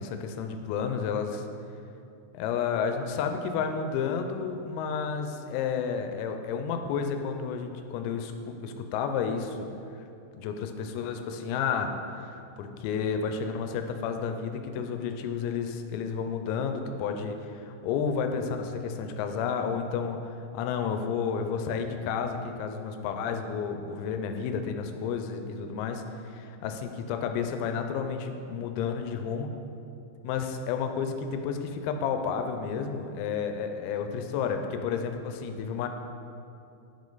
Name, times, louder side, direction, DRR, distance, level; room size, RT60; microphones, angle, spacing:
voice 1, 0.0-1.5 2.3-9.7 10.3-11.9 12.1-29.5 30.2-35.9, left 6 dB, 85° left, 6 dB, 3.3 m, -31 dB
11.0 x 5.2 x 3.9 m, 2.7 s
omnidirectional pair, 6.0 m